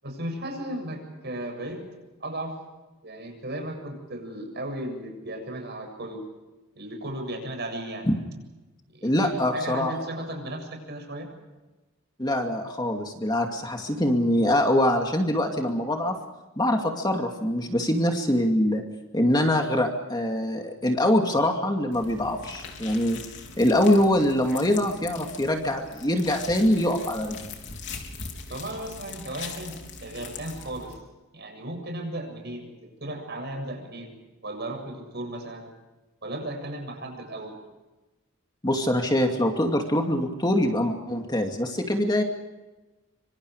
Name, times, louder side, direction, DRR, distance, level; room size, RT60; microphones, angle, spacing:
voice 1, 0.0-1.8 2.2-2.6 3.0-6.3 6.8-8.1 8.9-11.3 28.5-31.0 31.3-34.1 34.4-35.7 36.2-37.6, right 1 dB, 50° right, 4 dB, 7.5 m, -35 dB
voice 2, 9.0-9.9 12.2-16.1 16.6-18.8 19.1-23.2 23.6-27.4 38.6-42.2, left 1 dB, 20° left, 3 dB, 2.4 m, -24 dB
sound 1, 21.9-31.0, left 5 dB, 55° left, 4.0 m, -41 dB
27.0 x 25.5 x 5.0 m, 1.1 s
head